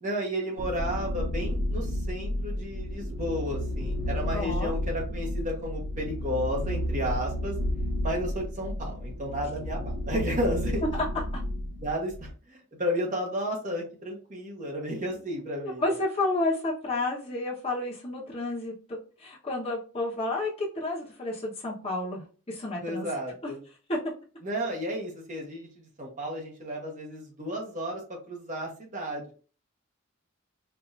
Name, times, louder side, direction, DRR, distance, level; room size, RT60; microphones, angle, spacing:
voice 1, 0.0-7.5 8.0-10.8 11.8-16.0 22.8-23.6 24.4-29.3, equal, 40° right, -1 dB, 1.3 m, -33 dB
sound 1, 0.6-12.3, equal, 55° right, 0.8 m, -32 dB
voice 2, 4.3-4.7 10.9-11.1 15.6-23.1 23.4-23.5 23.9-24.0, left 2 dB, 30° left, -4 dB, 1.1 m, -31 dB
4.7 x 2.8 x 2.5 m, 0.38 s
head